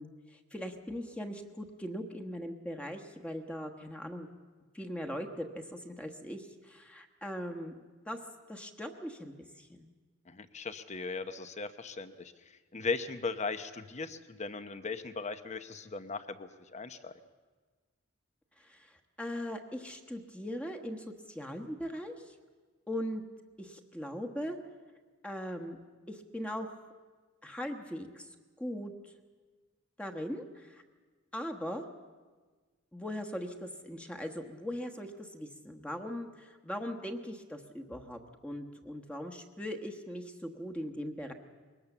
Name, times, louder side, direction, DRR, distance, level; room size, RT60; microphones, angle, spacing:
voice 1, 0.0-4.3 4.7-7.7 8.0-8.2 8.5-9.9 18.6-22.3 22.9-23.2 23.6-24.6 25.2-25.8 26.1-26.9 27.4-28.3 28.6-28.9 30.0-30.8 31.3-31.8 32.9-41.3, equal, 5° left, 3 dB, 1.2 m, -40 dB
voice 2, 10.3-12.3 12.7-17.1, left 4 dB, 35° left, 11 dB, 0.9 m, -38 dB
22.0 x 19.0 x 7.2 m, 1.4 s
head